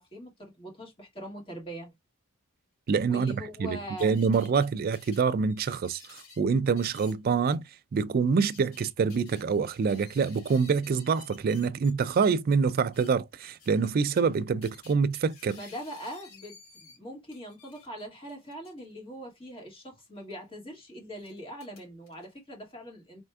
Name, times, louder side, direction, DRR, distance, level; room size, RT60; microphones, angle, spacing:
voice 1, 0.0-1.9 3.1-4.1 15.5-23.2, equal, 25° left, 1.9 m, -42 dB
voice 2, 2.9-7.6 7.9-15.6, right 5 dB, 40° right, 0.3 m, -26 dB
sound 1, 3.3-3.4 4.0-4.7 4.9-6.4 6.8-7.1 7.5-7.6 8.3-12.2 12.8-13.1 13.5-14.3 14.6-17.0 17.3-18.8 20.2-20.4 21.2-22.3, left 5 dB, 70° left, 2.3 m, -54 dB
4.5 x 3.4 x 2.3 m
head